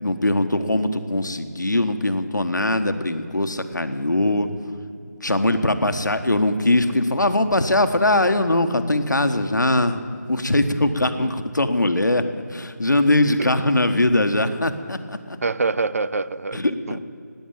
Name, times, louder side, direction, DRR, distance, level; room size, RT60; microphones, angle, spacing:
voice 1, 0.0-4.5 5.2-10.0 10.3-15.4 16.5-17.0, left 1 dB, 80° left, 8 dB, 1.3 m, -21 dB
voice 2, 15.4-17.0, right 3 dB, 50° right, 17 dB, 0.5 m, -26 dB
16.0 x 9.3 x 9.1 m, 2.5 s
figure-of-eight pair, 160°, 10 cm